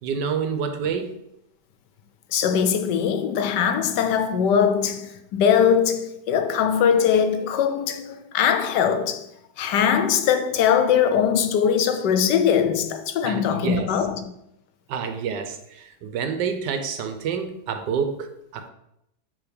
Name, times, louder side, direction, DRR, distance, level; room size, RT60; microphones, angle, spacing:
voice 1, 0.0-1.2 13.2-13.9 14.9-18.7, right 6 dB, 90° right, 1.4 m, -28 dB
voice 2, 2.3-9.3 9.6-14.2, left 8 dB, 85° left, 1.3 m, -21 dB
7.0 x 3.4 x 5.1 m
omnidirectional pair, 1.8 m